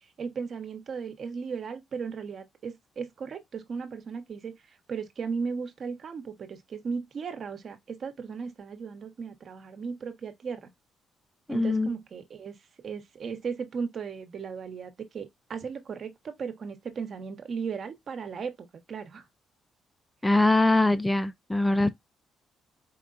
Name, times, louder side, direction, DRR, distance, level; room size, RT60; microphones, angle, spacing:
voice 1, 0.0-10.7 11.5-12.5 12.8-19.2, right 5 dB, 55° right, 1.1 m, -36 dB
voice 2, 11.5-11.9 20.2-21.9, left 2 dB, 10° left, 0.5 m, -22 dB
4.7 x 3.7 x 2.5 m
cardioid pair, 90°, 0 cm